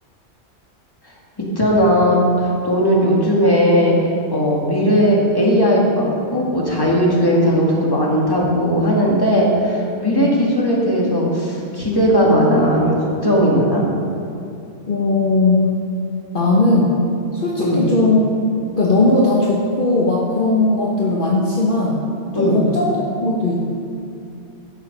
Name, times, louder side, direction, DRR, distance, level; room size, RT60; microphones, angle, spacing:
voice 1, 1.6-13.8 17.6-17.8 22.3-22.6, equal, 20° left, -3 dB, 2.0 m, -17 dB
voice 2, 14.9-15.7 16.3-17.0 17.3-18.2 18.7-22.1 22.3-23.6, left 2 dB, 45° left, -4 dB, 1.3 m, -18 dB
12.0 x 8.2 x 5.4 m, 2.6 s
omnidirectional pair, 1.2 m